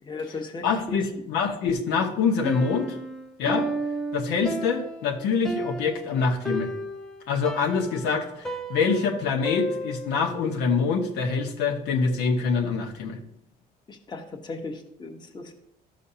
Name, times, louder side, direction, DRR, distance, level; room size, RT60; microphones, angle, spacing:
voice 1, 0.0-1.1 13.9-15.5, left 3 dB, 25° left, 3 dB, 1.2 m, -36 dB
voice 2, 0.6-3.0 3.4-3.7 4.1-6.7 7.3-13.2, left 5 dB, 90° left, 1 dB, 1.4 m, -25 dB
Piano, 2.4-10.3, right 1 dB, 5° left, 0.7 m, -33 dB
13.0 x 6.4 x 2.8 m, 0.76 s
cardioid pair, 110°, 17 cm